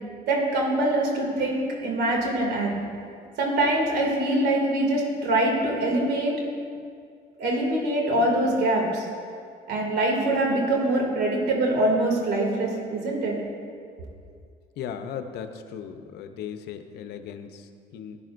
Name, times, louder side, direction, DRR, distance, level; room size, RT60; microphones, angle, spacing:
voice 1, 0.3-2.7 3.4-6.3 7.4-9.1 9.7-13.4, right 1 dB, 75° right, 0 dB, 2.5 m, -24 dB
voice 2, 14.8-18.2, left 8 dB, 75° left, 8 dB, 0.7 m, -37 dB
15.5 x 10.0 x 2.6 m, 2.2 s
cardioid pair, 110°, 17 cm